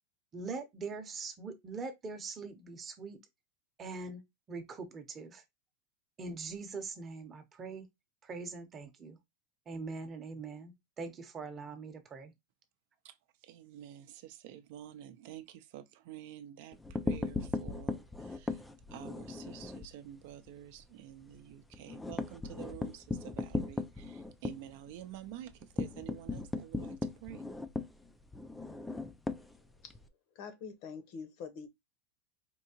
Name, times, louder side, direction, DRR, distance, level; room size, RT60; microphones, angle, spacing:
voice 1, 0.3-3.2 3.8-4.2 4.5-5.4 6.2-7.9 8.2-9.2 9.7-12.3, right 4 dB, 20° right, 0.8 m, -42 dB
voice 2, 13.0-18.6 18.9-27.5, right 12 dB, 55° right, 0.5 m, -49 dB
sound 1, 16.7-19.9 20.3-20.5 20.8-20.9 21.2-30.1, left 3 dB, 5° left, 0.3 m, -38 dB
voice 3, 30.3-31.7, left 5 dB, 45° left, 0.8 m, -45 dB
4.5 x 2.8 x 2.8 m
supercardioid pair, 160°, 0 cm